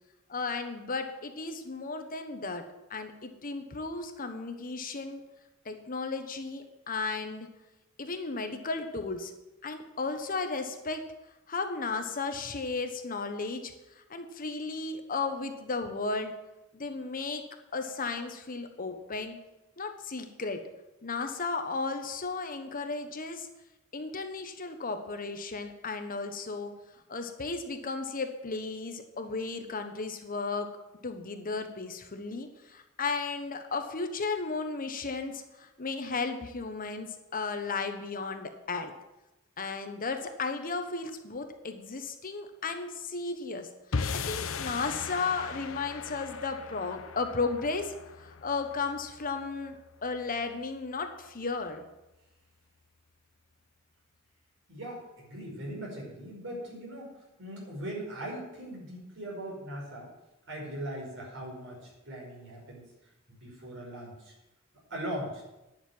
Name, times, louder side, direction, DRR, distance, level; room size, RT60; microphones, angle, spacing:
voice 1, 0.3-2.6 2.9-5.2 5.6-7.5 8.0-9.3 9.6-11.0 11.5-16.4 16.7-17.4 17.7-19.4 19.8-20.6 21.0-23.5 23.9-26.7 27.1-30.7 31.0-38.9 39.6-51.9, left 4 dB, 45° left, 6 dB, 1.1 m, -34 dB
sound 1, 43.9-50.3, left 5 dB, 70° left, 0.7 m, -38 dB
voice 2, 54.7-57.1 57.4-60.1 60.5-62.8 63.3-64.3 64.9-65.4, right 1 dB, 65° right, -2 dB, 5.2 m, -40 dB
10.5 x 6.7 x 9.3 m, 0.96 s
head